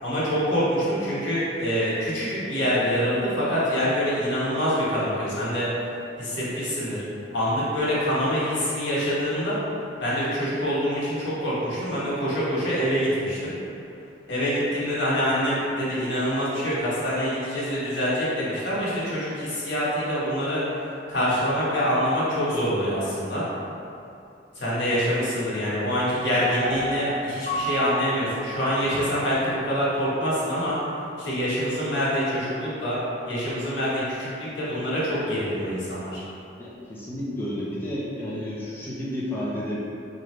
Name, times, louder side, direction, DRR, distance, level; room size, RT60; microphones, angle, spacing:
voice 1, 0.0-5.7 6.2-7.0 7.3-9.6 10.0-13.5 14.3-20.6 21.1-23.4 24.5-30.8 31.2-33.0 33.3-36.2, equal, 90° left, -8 dB, 1.3 m, -25 dB
Piano, 26.6-29.7 30.1-30.2, right 1 dB, 45° right, 1.0 m, -32 dB
voice 2, 36.6-39.8, left 1 dB, 10° left, -8 dB, 0.5 m, -31 dB
4.6 x 2.6 x 3.1 m, 2.7 s
head